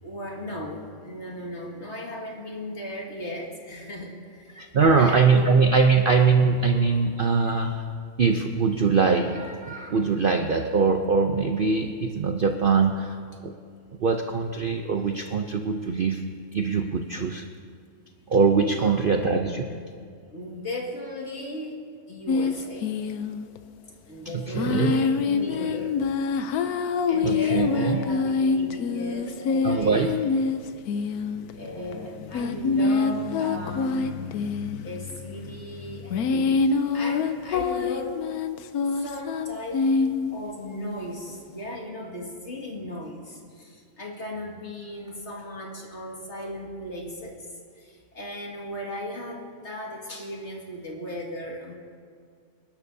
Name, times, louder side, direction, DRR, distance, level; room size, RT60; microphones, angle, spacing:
voice 1, 0.0-5.6 18.8-19.8 20.3-21.8 22.1-23.0 24.1-25.9 27.1-30.3 31.5-34.3 34.6-38.2 38.9-39.8 40.3-47.4 47.8-51.7, left 1 dB, 50° left, -1 dB, 2.3 m, -36 dB
voice 2, 4.5-7.9 8.2-13.5 14.0-16.2 16.5-17.4 18.3-19.7 24.2-25.0 27.2-28.0 29.6-30.1, right 5 dB, 55° right, 5 dB, 0.6 m, -22 dB
sound 1, 22.3-23.6 24.6-40.4, left 4 dB, 80° left, 1.2 m, -26 dB
28.0 x 11.5 x 2.7 m, 2.2 s
omnidirectional pair, 1.6 m